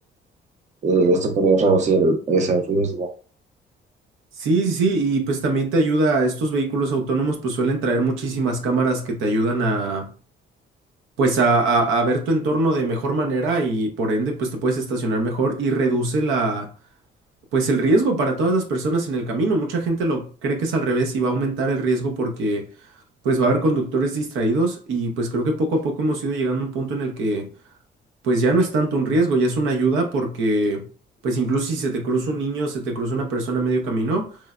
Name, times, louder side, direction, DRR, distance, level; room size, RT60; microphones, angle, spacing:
voice 1, 0.8-3.1, right 3 dB, 35° right, 0.6 m, -19 dB
voice 2, 4.4-10.1 11.2-16.7 17.5-22.7 23.2-27.5 28.2-30.9 31.2-34.4, right 2 dB, 85° right, 0.6 m, -22 dB
3.1 x 2.0 x 2.3 m
cardioid pair, 90°, 20 cm